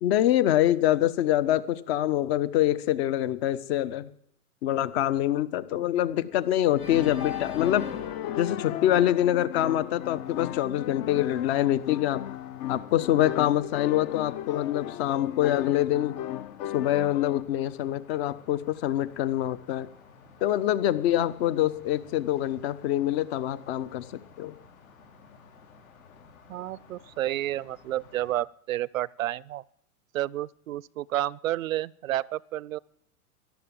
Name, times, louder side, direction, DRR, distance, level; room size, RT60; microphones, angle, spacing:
voice 1, 0.0-4.1 4.6-7.9 8.4-12.2 12.7-16.2 16.7-19.9 20.4-24.1 24.4-24.5, left 12 dB, 45° left, 1.2 m, -25 dB
Organ, 6.8-9.9, left 4 dB, 90° left, 2.5 m, -42 dB
sound 1, 6.9-17.4, left 12 dB, 30° left, 0.5 m, -36 dB
sound 2, 10.0-28.4, left 5 dB, 70° left, 5.2 m, -54 dB
voice 2, 26.5-29.6 30.1-32.8, right 14 dB, 65° right, 0.6 m, -30 dB
13.5 x 11.5 x 9.1 m
hypercardioid pair, 115°, 44 cm